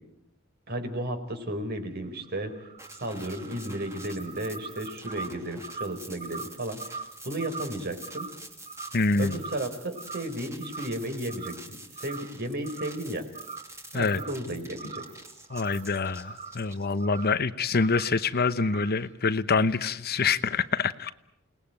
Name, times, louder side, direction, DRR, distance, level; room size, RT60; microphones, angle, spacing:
voice 1, 0.7-2.5 3.0-8.3 9.1-13.3 13.9-15.0, right 1 dB, 50° right, 7 dB, 4.4 m, -34 dB
sound 1, 2.0-9.7 9.9-10.4 10.6-11.7 11.9-12.3 12.6-13.1 13.3-14.5 14.7-16.7 17.0-17.4 17.8-18.2 18.6-19.1, right 4 dB, 35° right, 1.9 m, -42 dB
sound 2, 2.8-17.2, right 1 dB, 15° right, 2.8 m, -47 dB
voice 2, 8.9-9.4 13.9-14.2 14.5-14.6 15.5-21.1, left 4 dB, 50° left, 13 dB, 0.9 m, -26 dB
29.5 x 19.5 x 9.1 m, 0.84 s
head